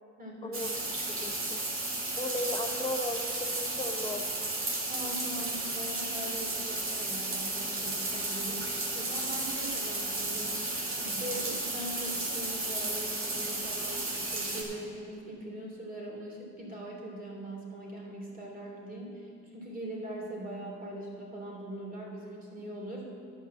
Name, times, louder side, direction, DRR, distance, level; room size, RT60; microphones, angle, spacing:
voice 1, 0.2-0.6 4.9-10.7 11.0-23.1, right 1 dB, 30° right, -2 dB, 3.0 m, -41 dB
sound 1, 0.5-14.6, right 2 dB, 45° right, 2.2 m, -33 dB
voice 2, 1.1-1.6 2.1-4.5, left 1 dB, 15° left, 1 dB, 0.8 m, -36 dB
11.0 x 5.9 x 7.8 m, 2.7 s
cardioid pair, 90°, 30 cm